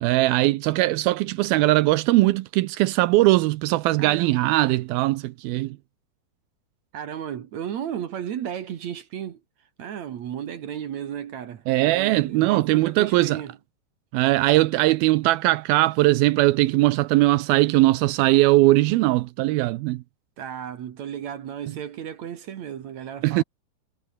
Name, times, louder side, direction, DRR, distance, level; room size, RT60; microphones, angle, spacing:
voice 1, 0.0-5.8 11.7-13.4 14.1-20.0 23.2-23.4, right 18 dB, 80° right, 2.5 m, -20 dB
voice 2, 4.0-4.4 6.9-9.4 9.8-13.6 20.4-23.4, right 9 dB, 55° right, 2.4 m, -34 dB
omnidirectional pair, 4.3 m